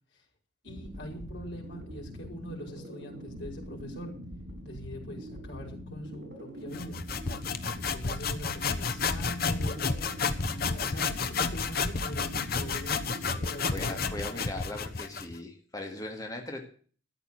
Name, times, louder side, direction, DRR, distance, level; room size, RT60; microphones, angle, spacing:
voice 1, 0.6-4.1 4.6-7.0 7.8-9.8 10.4-13.0 13.3-14.4, equal, 70° left, 1 dB, 5.1 m, -43 dB
sound 1, 0.7-14.3, equal, 85° right, 4.7 m, -43 dB
sound 2, 6.7-15.3, left 5 dB, 55° left, 1.0 m, -31 dB
voice 2, 13.7-16.7, left 2 dB, 20° left, 2 dB, 2.2 m, -39 dB
13.5 x 8.9 x 6.6 m, 0.43 s
head